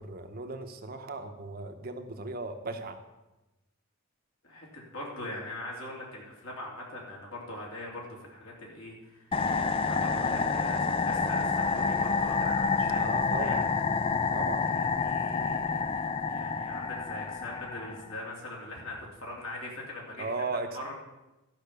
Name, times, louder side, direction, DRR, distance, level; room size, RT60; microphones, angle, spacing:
voice 1, 0.0-3.0 10.2-10.5 13.0-13.6 14.3-14.6 20.2-20.8, right 3 dB, 45° right, 6 dB, 0.9 m, -37 dB
voice 2, 4.4-13.6 14.6-20.5 20.7-20.9, left 1 dB, 80° left, -2 dB, 3.1 m, -42 dB
sound 1, 9.3-18.1, left 4 dB, 25° left, 0.4 m, -28 dB
12.0 x 5.7 x 6.8 m, 1.0 s
head